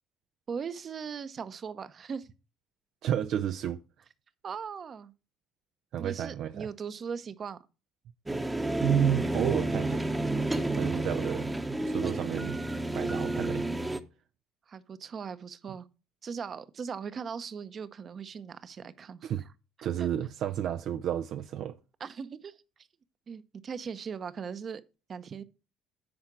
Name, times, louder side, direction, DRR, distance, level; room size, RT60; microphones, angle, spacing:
voice 1, 0.5-2.3 4.4-5.1 6.0-7.6 10.7-11.0 14.7-15.9 16.2-19.3 20.0-20.1 22.0-22.5 23.3-24.8 25.1-25.4, right 6 dB, 45° right, 0.8 m, -39 dB
voice 2, 3.0-3.8 5.9-6.7 8.8-10.0 10.7-11.5 11.8-12.6 12.9-13.7 19.2-19.4 19.8-21.8, right 10 dB, 65° right, 0.4 m, -31 dB
sound 1, 8.3-14.0, right 1 dB, 15° right, 0.9 m, -30 dB
9.7 x 4.4 x 6.1 m
supercardioid pair, 90°, 0 cm